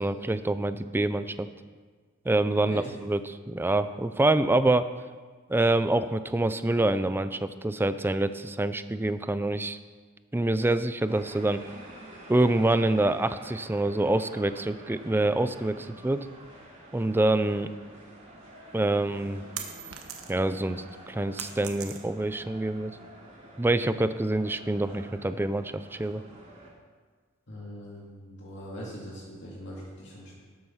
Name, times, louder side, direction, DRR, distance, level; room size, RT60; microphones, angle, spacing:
voice 1, 0.0-1.5 2.3-3.2 3.5-4.9 5.5-9.8 10.3-11.6 12.3-16.3 16.9-17.7 18.7-19.4 20.3-22.9 23.6-26.2, right 2 dB, 10° right, 12 dB, 0.4 m, -26 dB
sound 1, 11.1-26.7, right 1 dB, 30° right, 3.3 m, -49 dB
sound 2, 18.8-20.6 20.9-22.4, right 8 dB, 75° right, 1.2 m, -40 dB
voice 2, 27.5-30.4, equal, 60° left, -4 dB, 2.2 m, -41 dB
12.5 x 7.9 x 5.7 m, 1.5 s
head